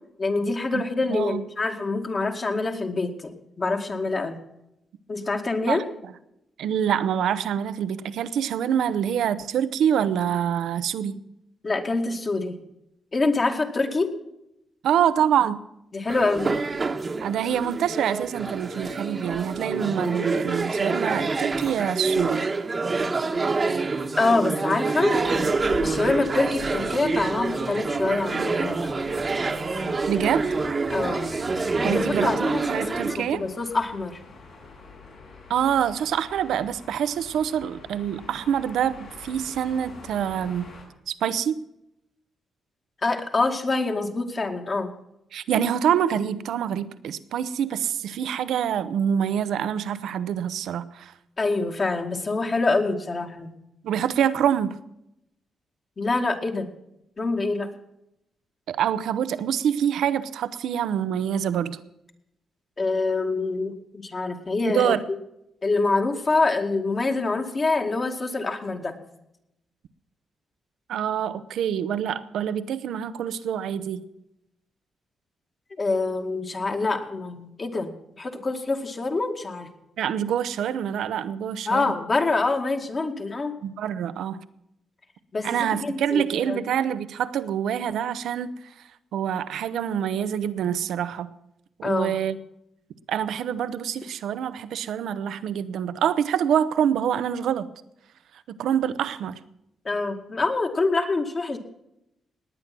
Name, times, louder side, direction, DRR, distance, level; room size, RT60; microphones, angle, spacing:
voice 1, 0.2-4.4 5.1-5.8 11.6-12.6 13.1-14.2 15.9-16.6 24.2-25.2 25.8-28.9 30.9-31.3 31.8-34.2 43.0-44.9 51.4-53.5 56.0-56.7 57.2-57.7 62.8-64.9 65.6-68.9 75.8-79.7 81.7-83.6 85.3-86.6 91.8-92.2 99.8-101.6, left 3 dB, 35° left, 3 dB, 2.1 m, -25 dB
voice 2, 1.1-1.4 5.7-5.8 6.6-11.2 14.8-15.6 17.2-22.5 30.1-30.4 31.8-32.4 32.7-33.4 35.5-40.7 41.1-41.6 45.3-51.1 53.8-54.8 58.7-61.8 64.7-65.0 70.9-74.0 80.0-81.9 83.6-84.4 85.4-88.6 89.1-91.3 91.8-92.4 93.1-97.7 98.5-99.4, right 9 dB, 85° right, 14 dB, 0.8 m, -26 dB
sound 1, 16.1-33.2, right 3 dB, 35° right, 1.3 m, -27 dB
sound 2, 25.1-40.8, left 3 dB, 75° left, 6.6 m, -44 dB
19.0 x 9.2 x 6.1 m, 0.82 s
cardioid pair, 90°, 0 cm